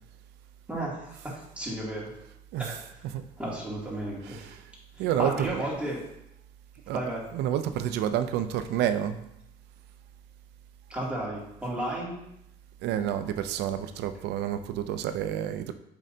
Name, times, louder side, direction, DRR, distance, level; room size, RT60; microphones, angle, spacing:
voice 1, 0.7-2.2 2.6-2.7 3.4-4.6 4.9-6.0 6.9-7.2 10.9-12.2, right 1 dB, 5° right, -6 dB, 2.6 m, -33 dB
voice 2, 2.5-3.2 4.2-4.7 5.0-5.6 6.9-9.3 12.8-15.7, right 10 dB, 80° right, 10 dB, 0.5 m, -30 dB
7.3 x 5.4 x 2.8 m, 0.80 s
cardioid pair, 110°, 17 cm